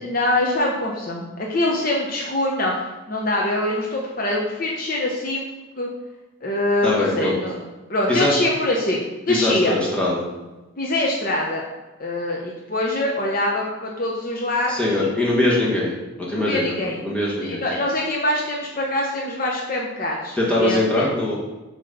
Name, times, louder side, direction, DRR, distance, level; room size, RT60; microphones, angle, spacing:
voice 1, 0.0-2.7 3.1-5.4 5.8-5.9 6.4-7.6 7.9-9.7 10.8-11.6 12.0-14.7 16.3-17.0 17.4-21.0, left 1 dB, 45° left, -2 dB, 0.8 m, -24 dB
voice 2, 6.8-7.4 8.1-8.4 9.3-10.2 14.7-16.7 17.0-17.6 20.4-21.4, left 1 dB, 5° left, -6 dB, 1.6 m, -22 dB
7.7 x 3.1 x 5.3 m, 1.1 s
head